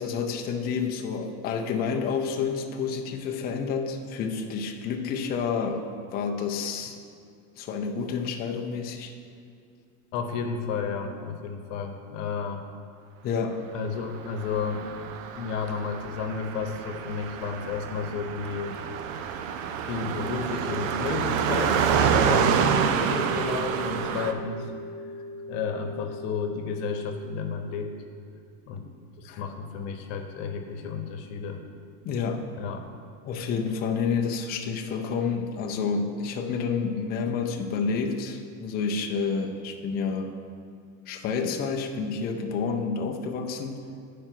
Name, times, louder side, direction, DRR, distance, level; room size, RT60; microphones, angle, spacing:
voice 1, 0.0-7.0 7.6-9.1 13.2-13.6 24.1-24.2 29.3-29.4 32.0-32.5 33.3-40.3 41.1-43.8, left 5 dB, 25° left, 3 dB, 0.5 m, -29 dB
voice 2, 10.1-12.6 13.7-14.8 15.3-18.8 19.8-24.7 25.5-27.9 28.7-28.8 29.2-31.6 32.6-32.9, left 5 dB, 60° left, 5 dB, 1.0 m, -32 dB
Car passing by, 14.4-24.3, right 7 dB, 65° right, 0.7 m, -27 dB
sound 1, 21.0-27.1, left 2 dB, 25° right, 0.7 m, -40 dB
10.0 x 5.0 x 4.5 m, 2.3 s
supercardioid pair, 140°, 42 cm